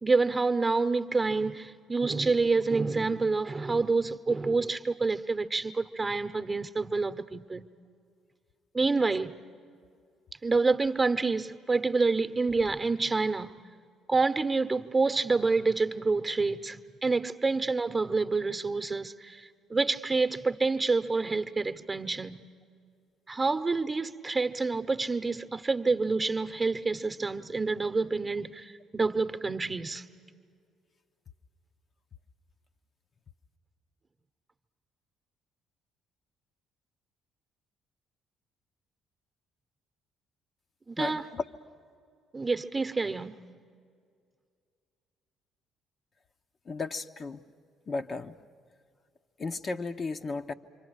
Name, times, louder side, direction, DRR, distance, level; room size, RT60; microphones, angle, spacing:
voice 1, 0.0-7.7 8.7-9.4 10.4-13.5 14.1-22.5 23.3-30.0 40.9-41.2 42.3-43.3, right 3 dB, 25° right, 1.0 m, -28 dB
voice 2, 41.0-41.4 46.7-47.4 47.9-48.4 49.4-50.5, left 3 dB, 40° left, 0.9 m, -34 dB
27.5 x 25.0 x 6.5 m
hypercardioid pair, 50°, 0 cm